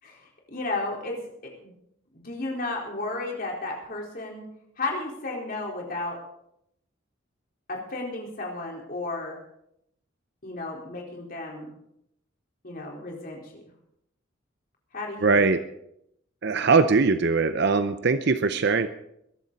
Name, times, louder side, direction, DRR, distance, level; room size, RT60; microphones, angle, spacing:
voice 1, 0.0-1.2 1.4-1.7 2.1-4.5 4.8-6.2 7.7-9.4 10.4-11.7 12.6-13.5 14.9-15.5, left 2 dB, 45° left, -1 dB, 4.3 m, -33 dB
voice 2, 15.2-15.6 16.4-18.9, right 4 dB, 60° right, 10 dB, 0.6 m, -21 dB
22.0 x 12.0 x 4.1 m, 0.77 s
head